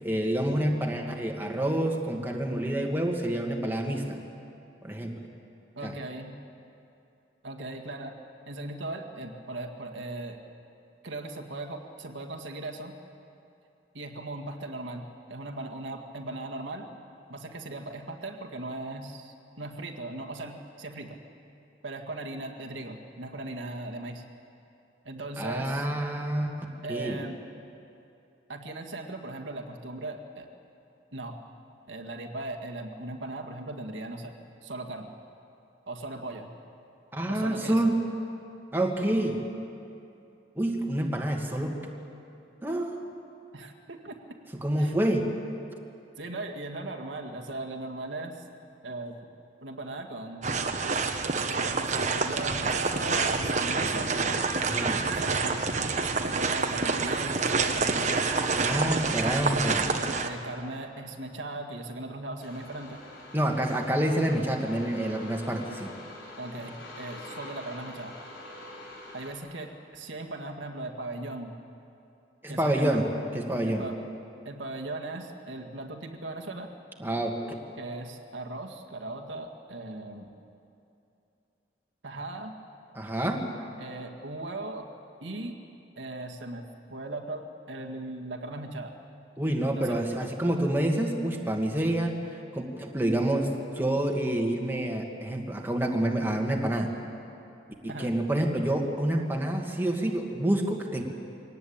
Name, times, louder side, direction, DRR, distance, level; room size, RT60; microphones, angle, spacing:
voice 1, 0.0-4.2 4.8-5.3 5.8-5.9 25.4-26.5 26.9-27.2 37.1-38.0 38.7-39.4 40.6-41.8 42.6-43.0 44.6-45.3 54.6-55.0 58.6-59.9 63.3-65.9 72.4-73.8 77.0-77.4 82.9-83.5 89.4-92.1 92.5-96.9 98.0-101.0, right 1 dB, 10° right, 1 dB, 1.9 m, -28 dB
voice 2, 5.8-6.3 7.4-8.1 8.5-10.4 11.0-12.9 13.9-16.9 17.3-21.2 21.8-24.2 25.0-25.9 26.8-27.4 28.5-30.5 31.1-31.4 31.9-34.3 34.6-35.1 35.9-36.5 37.3-37.9 43.5-44.2 44.8-44.9 46.2-48.4 48.8-49.2 49.6-50.7 51.5-54.4 55.1-55.7 56.2-58.3 60.2-63.0 66.4-68.2 69.1-71.5 72.5-73.0 73.7-74.0 74.4-76.7 77.8-80.3 82.0-82.5 83.8-84.9 85.2-85.6 86.0-89.0 89.7-90.1 97.9-98.1, right 2 dB, 90° right, 3 dB, 2.0 m, -38 dB
sound 1, 50.4-60.3, right 4 dB, 40° right, 1.2 m, -27 dB
sound 2, 62.4-69.3, left 1 dB, 75° left, 5.1 m, -45 dB
23.5 x 18.5 x 8.7 m, 2.7 s
head